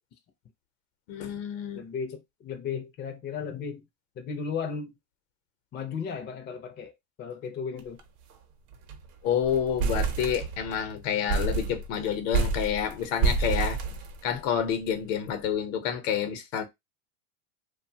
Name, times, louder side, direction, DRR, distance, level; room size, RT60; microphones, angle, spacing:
voice 1, 1.1-1.9 9.2-13.8 14.2-16.6, left 8 dB, 70° left, 0.9 m, -29 dB
voice 2, 1.7-3.8 4.2-4.9 5.7-6.9 7.2-8.0, left 6 dB, 25° left, 0.5 m, -35 dB
sound 1, 7.8-8.0 8.3-8.4 8.7-9.1 9.4-10.8 11.3-14.6, right 5 dB, 55° right, 0.8 m, -29 dB
2.6 x 2.3 x 2.7 m
supercardioid pair, 125°, 40 cm